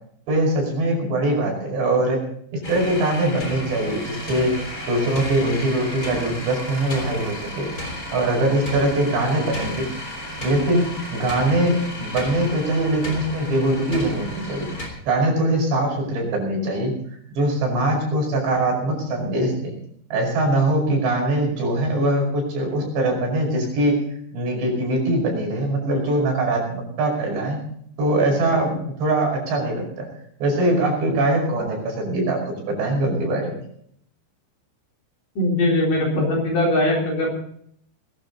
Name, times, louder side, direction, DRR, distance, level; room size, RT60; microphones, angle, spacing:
voice 1, 0.3-2.2 2.5-4.5 4.9-7.7 8.1-9.9 10.4-10.9 11.1-14.7 15.1-16.9 17.4-19.7 20.1-24.0 24.3-27.6 28.0-30.1 30.4-33.6, right 1 dB, 70° right, -1 dB, 7.5 m, -22 dB
sound 1, 2.6-14.9, left 1 dB, 20° left, 3.3 m, -33 dB
voice 2, 35.4-37.3, left 1 dB, 50° left, -2 dB, 5.3 m, -20 dB
20.5 x 11.5 x 4.1 m, 0.66 s
omnidirectional pair, 5.2 m